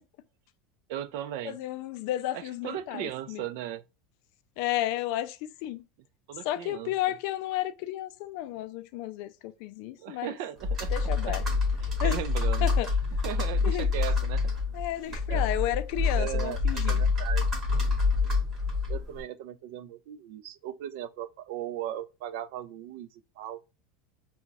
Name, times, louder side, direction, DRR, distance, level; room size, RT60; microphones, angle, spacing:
voice 1, 0.9-1.6 2.3-3.8 6.3-6.9 10.0-11.4 11.8-12.7 13.2-14.5 15.3-15.5 16.1-17.4 18.9-23.1 23.4-23.6, right 12 dB, 60° right, 0.3 m, -37 dB
voice 2, 1.4-3.4 4.6-5.8 6.5-10.4 10.9-11.4 12.0-12.2 12.6-12.9 13.6-13.9 14.7-17.0, left 14 dB, 55° left, 0.3 m, -32 dB
Computer keyboard, 10.6-19.2, left 4 dB, 25° right, 1.0 m, -27 dB
2.4 x 2.2 x 3.9 m
supercardioid pair, 165°, 0 cm